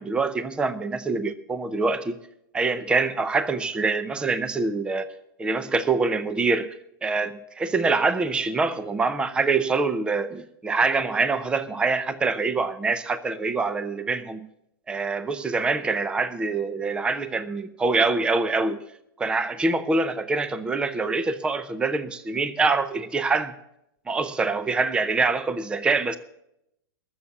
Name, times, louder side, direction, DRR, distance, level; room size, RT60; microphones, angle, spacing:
voice 1, 0.0-2.2 2.5-5.1 5.4-6.7 7.0-14.5 14.9-18.8 19.2-23.5 24.1-26.2, right 3 dB, 10° right, 12 dB, 0.6 m, -25 dB
18.5 x 7.2 x 7.0 m, 0.79 s
hypercardioid pair, 145°, 12 cm